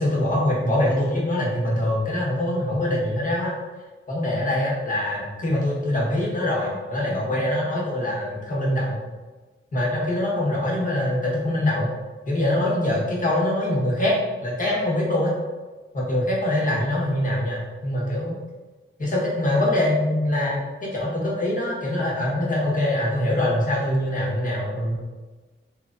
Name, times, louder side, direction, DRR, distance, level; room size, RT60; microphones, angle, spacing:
voice 1, 0.0-3.5 4.1-9.0 9.7-11.9 12.3-14.1 14.4-15.3 15.9-18.3 19.0-25.0, left 1 dB, 40° left, -5 dB, 1.1 m, -24 dB
3.5 x 3.1 x 2.5 m, 1.3 s
wide cardioid pair, 105°, 21 cm